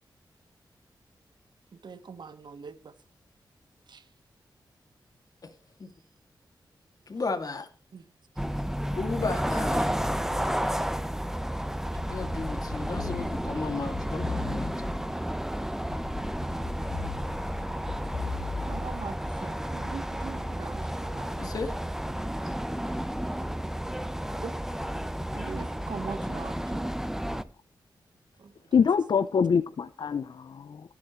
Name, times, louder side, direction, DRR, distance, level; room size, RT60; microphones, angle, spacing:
voice 1, 1.7-2.9 3.9-4.1 7.9-8.0 18.7-21.5 24.0-24.5 25.3-26.9 28.4-28.8, right 5 dB, 70° right, 1.4 m, -42 dB
voice 2, 7.1-7.7 9.0-10.0 12.0-15.0 21.4-21.7 22.4-22.5, left 4 dB, 50° left, 2.5 m, -34 dB
sound 1, 8.4-27.4, equal, 5° right, 1.0 m, -32 dB
sound 2, 12.0-15.2 15.9-19.2, left 4 dB, 85° left, 2.1 m, -38 dB
voice 3, 28.7-30.9, left 6 dB, 70° left, 0.7 m, -25 dB
24.0 x 8.6 x 3.2 m
wide cardioid pair, 75°, 8 cm